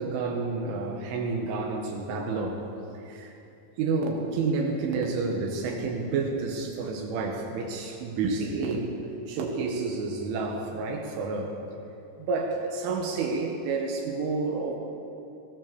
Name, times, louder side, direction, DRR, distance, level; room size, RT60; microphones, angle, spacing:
voice 1, 0.0-2.7 2.9-3.3 3.8-9.0 9.3-11.6 12.2-14.8, right 4 dB, 85° right, 0 dB, 4.2 m, -29 dB
19.5 x 19.0 x 7.0 m, 2.8 s
omnidirectional pair, 5.4 m